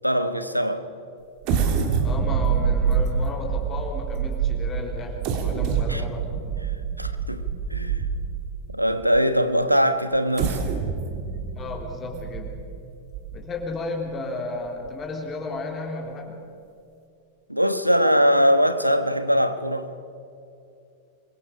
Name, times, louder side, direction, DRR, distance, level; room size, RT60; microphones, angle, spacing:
voice 1, 0.0-0.8 5.9-6.0 7.0-7.4 7.7-8.1 8.7-10.6 17.5-19.9, equal, 90° right, 1.2 m, -21 dB
sound 1, 1.4-8.6 9.2-9.3 10.1-13.7 14.1-14.2 14.7-14.9, right 6 dB, 45° right, 2.6 m, -26 dB
voice 2, 2.0-6.3 11.6-12.5 13.3-16.4, left 3 dB, 25° left, 3.3 m, -33 dB
26.5 x 22.5 x 4.9 m
figure-of-eight pair, 90°, 0 cm